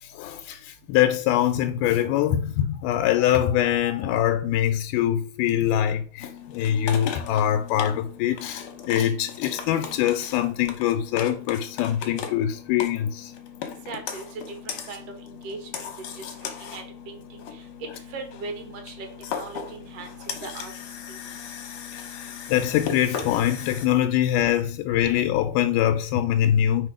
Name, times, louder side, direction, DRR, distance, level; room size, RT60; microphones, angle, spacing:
voice 1, 0.0-13.3 22.1-26.9, left 11 dB, 90° left, 2.1 m, -23 dB
sound 1, 6.2-23.9, left 7 dB, 70° left, 1.9 m, -37 dB
voice 2, 13.9-15.9 16.6-16.8 17.1-17.6 18.1-19.1 19.3-20.7 21.1-21.2, right 3 dB, 60° right, 2.1 m, -39 dB
4.5 x 4.3 x 4.9 m
omnidirectional pair, 3.6 m